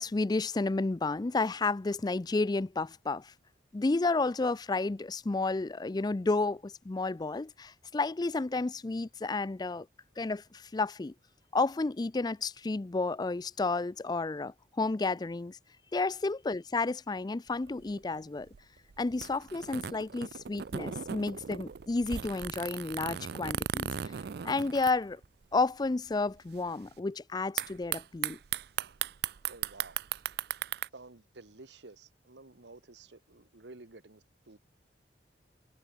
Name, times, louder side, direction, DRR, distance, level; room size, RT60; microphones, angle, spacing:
voice 1, 0.0-3.3 3.7-9.9 10.2-11.1 11.5-15.6 15.9-18.5 19.0-23.9 24.4-25.2 25.5-28.4, left 3 dB, 25° left, 0.4 m, -31 dB
sound 1, 17.5-25.6 25.8-25.9 26.1-26.6 27.6-30.9, right 9 dB, 65° right, 0.5 m, -37 dB
voice 2, 29.4-30.0 30.9-34.6, right 3 dB, 90° right, 1.5 m, -52 dB
head